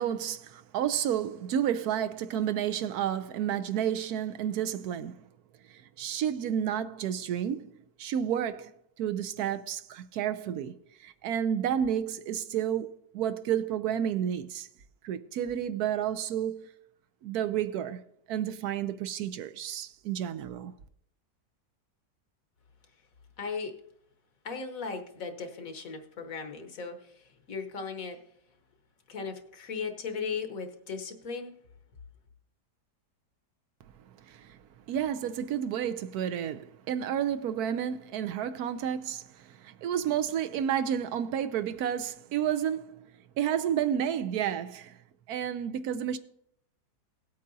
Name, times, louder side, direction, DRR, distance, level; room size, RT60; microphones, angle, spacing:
voice 1, 0.0-5.3 5.7-14.7 15.0-16.7 17.2-18.0 18.3-20.7 34.2-34.6 34.9-43.1 43.4-45.0 45.3-46.2, right 9 dB, 75° right, 1.1 m, -31 dB
voice 2, 23.4-23.8 24.4-28.2 29.1-31.5, left 5 dB, 60° left, 1.3 m, -37 dB
17.5 x 8.4 x 2.7 m
omnidirectional pair, 1.8 m